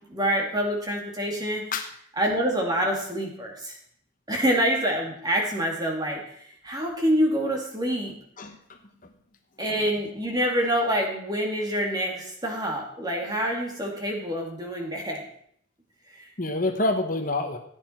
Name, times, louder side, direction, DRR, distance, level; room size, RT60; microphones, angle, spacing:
voice 1, 0.1-1.6 2.2-3.8 4.3-8.1 9.6-15.2 16.1-16.3, equal, 20° right, 0 dB, 2.5 m, -26 dB
voice 2, 8.4-9.1 16.4-17.6, left 2 dB, 40° left, 5 dB, 1.1 m, -28 dB
16.0 x 9.4 x 4.6 m, 0.65 s
head